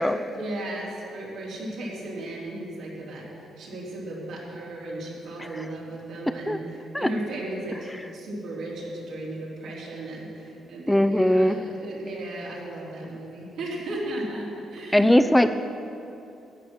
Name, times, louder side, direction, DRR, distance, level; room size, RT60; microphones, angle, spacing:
voice 1, 0.3-3.3 3.6-15.2, right 1 dB, 80° right, -5 dB, 3.6 m, -35 dB
voice 2, 10.9-11.6 14.9-15.5, left 1 dB, 5° left, 10 dB, 0.5 m, -20 dB
12.5 x 9.7 x 6.2 m, 2.8 s
cardioid pair, 90°, 0 cm